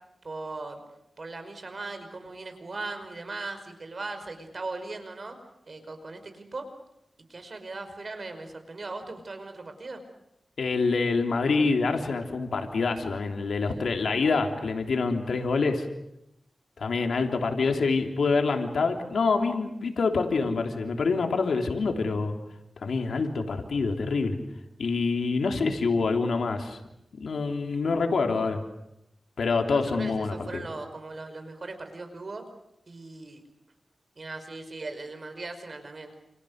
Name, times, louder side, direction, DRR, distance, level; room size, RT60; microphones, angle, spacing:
voice 1, 0.2-0.8 1.2-5.4 5.7-6.7 7.3-10.0 13.6-13.8 29.7-32.4 32.9-33.4 34.2-36.1, right 3 dB, 50° right, 7 dB, 5.4 m, -39 dB
voice 2, 10.6-15.8 16.8-22.4 22.8-24.4 24.8-26.8 27.1-28.6 29.4-30.6, left 4 dB, 90° left, 4 dB, 3.3 m, -26 dB
30.0 x 28.5 x 6.6 m, 0.82 s
wide cardioid pair, 95°, 0 cm